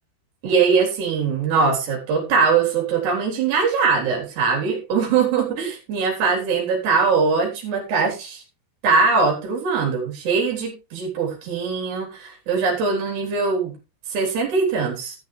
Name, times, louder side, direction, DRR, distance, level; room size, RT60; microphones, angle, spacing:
voice 1, 0.4-8.4 8.8-13.7 14.1-15.2, right 5 dB, 60° right, -1 dB, 5.5 m, -21 dB
13.0 x 11.0 x 3.3 m, 0.29 s
omnidirectional pair, 5.5 m